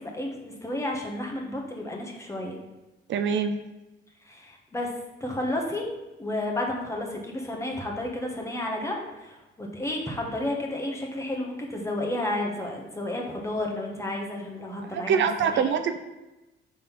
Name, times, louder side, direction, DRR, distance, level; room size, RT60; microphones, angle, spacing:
voice 1, 0.0-2.6 4.3-4.9 5.2-5.9 6.2-15.7, left 1 dB, 15° left, 0 dB, 1.4 m, -32 dB
voice 2, 3.1-3.6 14.9-16.0, right 7 dB, 70° right, 8 dB, 0.5 m, -24 dB
5.4 x 4.0 x 5.5 m, 1.0 s
cardioid pair, 90°, 20 cm